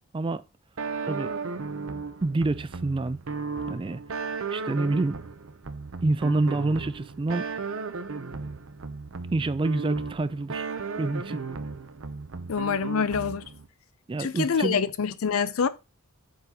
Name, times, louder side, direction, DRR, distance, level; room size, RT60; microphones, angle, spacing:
sound 1, 0.8-13.7, right 4 dB, 65° right, 0.7 m, -35 dB
voice 1, 2.2-3.2 3.7-4.0 4.5-5.2 6.0-7.5 9.3-10.7 11.0-11.4 14.1-14.8, right 2 dB, 25° right, 0.3 m, -27 dB
voice 2, 12.5-13.4 14.2-15.7, left 6 dB, 75° left, 0.5 m, -26 dB
7.7 x 3.9 x 4.1 m
head